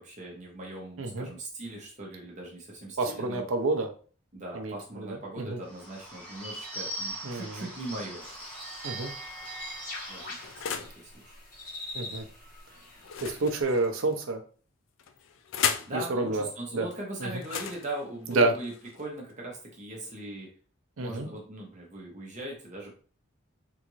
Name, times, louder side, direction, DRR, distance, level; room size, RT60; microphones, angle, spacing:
voice 1, 0.0-3.5 4.3-8.2 10.1-11.4 15.6-20.5 21.0-23.0, right 1 dB, 35° right, -2 dB, 0.8 m, -40 dB
voice 2, 3.0-3.9 4.5-5.6 7.2-7.7 8.8-9.1 11.9-12.3 13.2-14.4 15.9-16.5 16.7-16.9 17.2-17.3 18.3-18.5 21.0-21.3, right 2 dB, 75° right, 6 dB, 0.6 m, -29 dB
Bird / Bell, 5.6-10.6, right 2 dB, 5° left, 1.1 m, -40 dB
sound 1, 7.9-8.6 9.4-11.0 13.0-14.2 15.0-16.0 17.4-19.3, left 8 dB, 65° left, 0.4 m, -36 dB
sound 2, 8.2-13.6, left 3 dB, 40° left, 1.0 m, -44 dB
3.7 x 2.4 x 3.0 m, 0.41 s
head